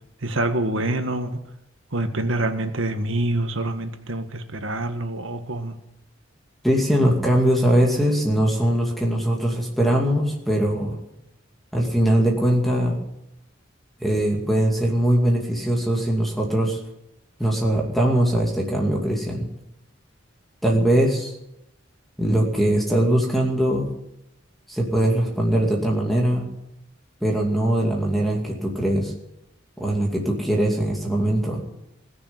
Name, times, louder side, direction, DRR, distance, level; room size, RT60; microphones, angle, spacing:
voice 1, 0.2-1.4 1.9-5.8, right 1 dB, 75° right, 8 dB, 1.7 m, -26 dB
voice 2, 6.6-11.0 11.7-13.0 14.0-16.8 17.4-19.5 20.6-21.4 22.2-23.9 24.7-26.5 27.2-29.1 29.8-31.6, right 1 dB, ahead, -2 dB, 2.4 m, -21 dB
20.5 x 6.9 x 9.8 m, 0.83 s
head